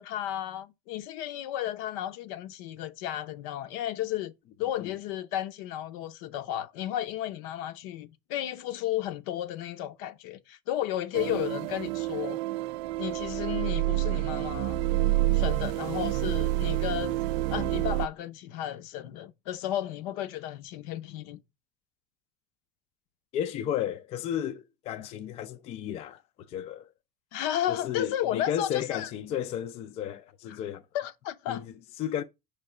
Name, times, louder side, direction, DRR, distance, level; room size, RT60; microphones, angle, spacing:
voice 1, 0.0-4.3 4.6-12.4 13.0-14.8 15.3-17.2 17.5-21.4 27.3-29.1 30.9-31.6, left 12 dB, 60° left, 0.7 m, -33 dB
sound 1, 11.1-18.1, right 16 dB, 85° right, 0.4 m, -28 dB
voice 2, 23.3-26.9 27.7-30.8 31.5-32.2, left 10 dB, 30° left, 0.4 m, -33 dB
6.2 x 3.3 x 4.8 m
cardioid pair, 170°, 21 cm